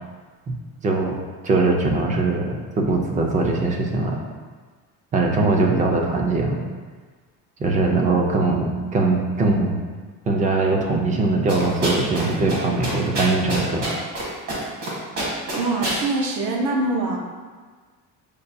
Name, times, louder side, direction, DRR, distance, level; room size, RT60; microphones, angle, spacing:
voice 1, 0.8-1.1 1.4-4.2 5.1-6.6 7.6-9.8 10.3-13.8, right 3 dB, 20° right, 1 dB, 0.4 m, -21 dB
sound 1, 11.5-12.2 12.5-12.6 12.8-14.2 14.5-14.9 15.2-16.0, right 1 dB, 50° right, 1.3 m, -26 dB
voice 2, 15.5-17.2, right 2 dB, 75° right, 0 dB, 0.8 m, -23 dB
6.4 x 2.2 x 2.6 m, 1.5 s
cardioid pair, 155°, 35 cm